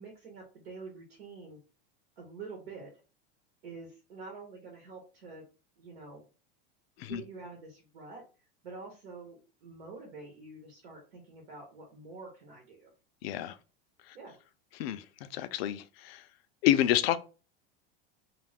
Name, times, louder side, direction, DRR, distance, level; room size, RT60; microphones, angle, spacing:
voice 1, 0.0-1.6 2.2-2.9 3.6-5.4 5.8-6.2 7.1-8.2 8.6-12.9 14.1-14.4, right 4 dB, 90° right, 1.1 m, -47 dB
voice 2, 13.2-13.6 14.1-14.2 14.8-15.0 15.3-16.2 16.6-17.2, left 12 dB, 75° left, 0.5 m, -28 dB
2.5 x 2.3 x 3.4 m
supercardioid pair, 120°, 30 cm